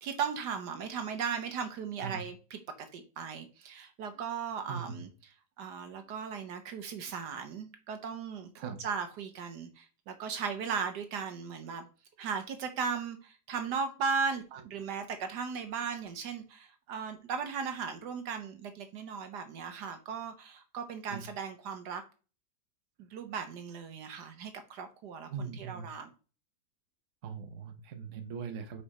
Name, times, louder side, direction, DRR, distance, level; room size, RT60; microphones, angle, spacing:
voice 1, 0.0-5.1 5.6-11.9 12.2-22.0 23.0-26.1, right 6 dB, 70° right, 7 dB, 1.3 m, -37 dB
voice 2, 4.7-5.0 8.6-8.8 14.5-14.6 21.1-21.2 25.3-25.9 27.2-28.8, right 6 dB, 50° right, 6 dB, 1.0 m, -40 dB
5.2 x 4.9 x 4.2 m, 0.36 s
omnidirectional pair, 1.9 m